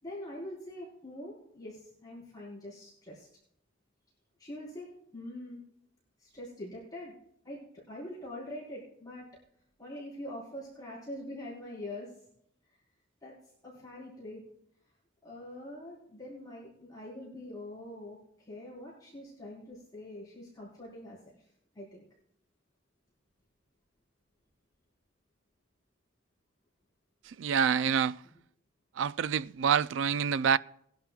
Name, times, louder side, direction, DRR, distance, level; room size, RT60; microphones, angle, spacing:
voice 1, 0.0-3.3 4.4-5.6 6.2-7.1 7.4-9.3 9.8-12.1 13.2-13.3 13.6-14.4 15.2-21.2 21.7-22.1, left 1 dB, 20° left, 4.4 m, -44 dB
voice 2, 27.2-28.2 28.9-30.6, right 7 dB, 75° right, 0.3 m, -27 dB
20.5 x 11.5 x 2.4 m
head